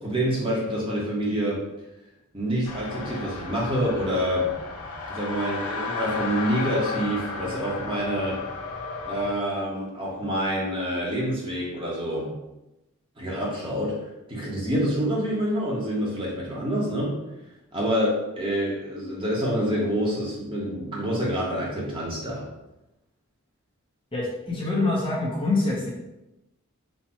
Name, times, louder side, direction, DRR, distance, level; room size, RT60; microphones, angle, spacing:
voice 1, 0.0-1.6 2.3-4.5 5.1-8.4 9.0-12.3 13.2-14.0 14.3-17.1 17.7-22.5, equal, 25° right, -4 dB, 1.0 m, -27 dB
sound 1, 2.6-9.3, left 3 dB, 85° left, 0.9 m, -33 dB
voice 2, 24.1-25.9, left 2 dB, 25° left, -5 dB, 0.8 m, -25 dB
4.3 x 2.3 x 4.3 m, 0.93 s
head